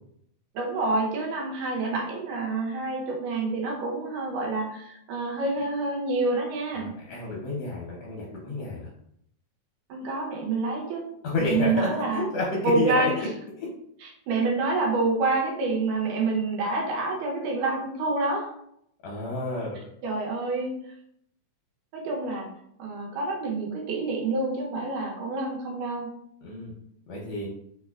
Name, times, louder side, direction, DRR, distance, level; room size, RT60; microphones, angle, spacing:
voice 1, 0.6-6.9 9.9-11.1 11.4-12.3 12.6-13.2 14.0-18.5 20.0-20.7 21.9-22.5 22.8-26.1, right 3 dB, 80° right, -1 dB, 2.3 m, -27 dB
voice 2, 6.7-8.9 11.2-13.3 13.6-13.7 19.0-19.8 26.4-26.7 27.1-27.5, left 2 dB, 80° left, -3 dB, 1.4 m, -30 dB
5.0 x 2.2 x 2.3 m, 0.72 s
omnidirectional pair, 3.6 m